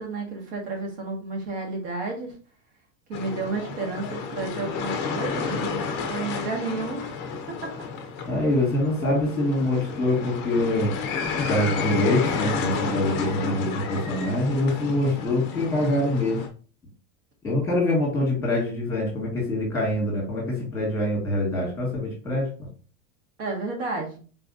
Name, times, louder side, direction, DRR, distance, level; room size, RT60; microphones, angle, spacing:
voice 1, 0.0-2.3 3.1-7.2 7.6-7.7 23.4-24.2, right 3 dB, 60° right, 0 dB, 1.7 m, -31 dB
sound 1, 3.1-16.5, left 5 dB, 25° left, 0.5 m, -31 dB
voice 2, 8.3-10.9 11.5-16.4 17.4-22.5, left 1 dB, 5° left, -3 dB, 2.0 m, -24 dB
4.4 x 3.3 x 2.6 m, 0.38 s
supercardioid pair, 160°, 41 cm